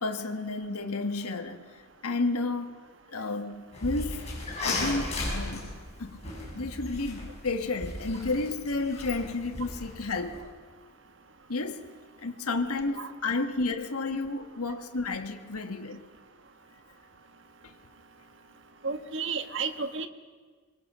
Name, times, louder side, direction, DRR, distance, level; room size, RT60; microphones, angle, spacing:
voice 1, 0.0-2.8 3.1-4.3 4.6-5.7 6.0-6.2 6.5-10.4 11.5-11.8 12.2-16.0 17.6-17.7, left 3 dB, 90° left, 1.5 m, -31 dB
sound 1, 3.7-10.4, left 2 dB, 30° left, 7.3 m, -36 dB
voice 2, 18.8-20.1, right 5 dB, 55° right, 1.5 m, -32 dB
25.5 x 23.0 x 6.2 m
head